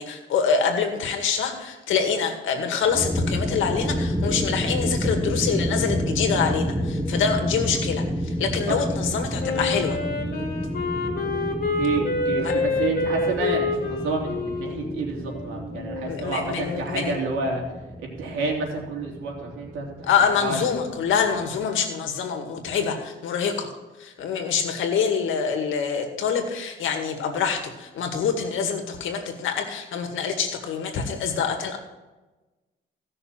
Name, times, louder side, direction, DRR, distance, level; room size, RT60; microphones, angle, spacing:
voice 1, 0.0-10.0 12.4-12.5 16.1-17.1 20.0-23.7 24.0-31.8, left 6 dB, 80° left, 4 dB, 2.1 m, -25 dB
sound 1, 2.8-21.6, equal, 5° right, 1.2 m, -30 dB
Wind instrument woodwind instrument, 9.4-16.2, left 3 dB, 50° left, 2.8 m, -27 dB
voice 2, 11.8-17.6 18.0-20.1 20.4-20.6, right 3 dB, 85° right, -1 dB, 3.4 m, -29 dB
16.5 x 6.4 x 4.5 m, 1.1 s
cardioid pair, 90°, 20 cm